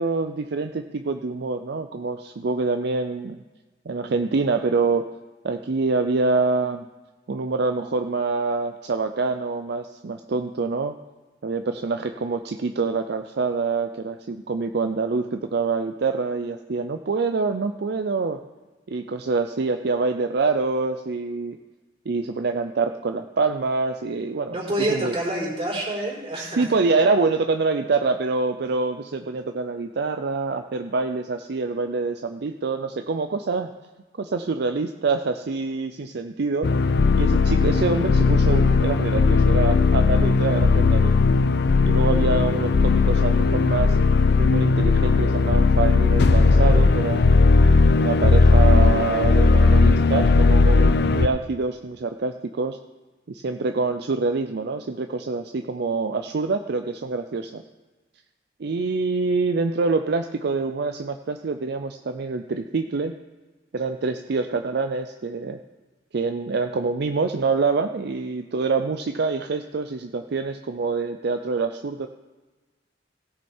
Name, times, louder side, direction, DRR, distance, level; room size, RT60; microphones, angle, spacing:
voice 1, 0.0-3.4 3.9-5.0 5.4-6.9 7.3-10.9 11.4-18.4 18.9-21.6 22.1-25.1 26.4-33.7 34.2-36.7 37.1-41.1 41.8-44.0 44.3-47.4 48.0-52.8 53.3-57.6 58.6-63.1 63.7-65.6 66.1-72.1, right 4 dB, 65° right, 7 dB, 0.5 m, -26 dB
voice 2, 24.5-26.7, right 1 dB, 35° right, -3 dB, 4.1 m, -27 dB
sound 1, 36.6-51.3, left 3 dB, 60° left, 0.5 m, -17 dB
16.5 x 6.9 x 4.4 m, 1.3 s
head